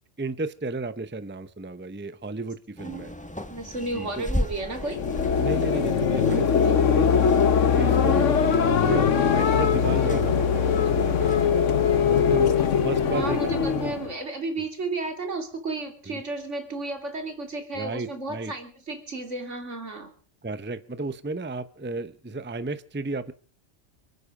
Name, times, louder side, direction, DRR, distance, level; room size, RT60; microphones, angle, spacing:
voice 1, 0.2-3.1 3.9-4.3 5.4-7.1 7.7-8.5 8.9-11.7 12.0-12.6 12.8-13.9 14.6-14.7 16.1-16.2 17.7-18.5 20.4-23.3, right 3 dB, 10° right, 13 dB, 0.8 m, -33 dB
sound 1, 2.8-11.4, left 1 dB, 5° left, 1.6 m, -37 dB
voice 2, 3.5-5.0 8.1-8.3 13.0-20.1, right 2 dB, 75° right, 5 dB, 3.2 m, -33 dB
sound 2, 4.8-14.1, left 7 dB, 80° left, 1.5 m, -21 dB
28.5 x 9.5 x 4.9 m, 0.43 s
omnidirectional pair, 1.2 m